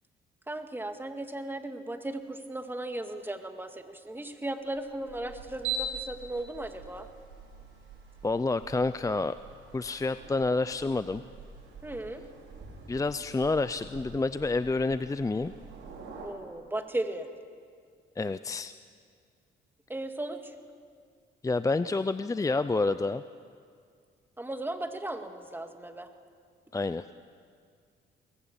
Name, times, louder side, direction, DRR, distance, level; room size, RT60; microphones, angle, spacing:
voice 1, 0.5-7.1 11.8-12.2 16.2-17.3 19.9-20.6 24.4-26.1, right 1 dB, 10° right, 6 dB, 2.1 m, -36 dB
sound 1, 4.7-16.3, right 3 dB, 75° right, 5.3 m, -43 dB
voice 2, 8.2-9.4 9.7-11.2 12.9-15.5 18.2-18.8 21.4-23.2 26.7-27.0, left 3 dB, 15° left, 13 dB, 0.5 m, -28 dB
22.5 x 20.0 x 8.9 m, 2.2 s
cardioid pair, 90°, 20 cm